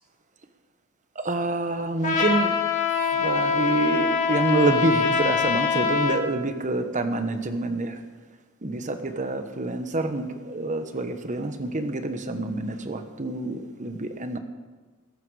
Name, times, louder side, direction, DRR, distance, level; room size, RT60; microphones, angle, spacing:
voice 1, 1.2-2.6 3.2-7.9 8.6-14.4, right 2 dB, 35° right, 8 dB, 1.1 m, -27 dB
Trumpet, 2.0-6.2, left 5 dB, 35° left, 2.0 m, -24 dB
20.5 x 11.5 x 4.9 m, 1.3 s
head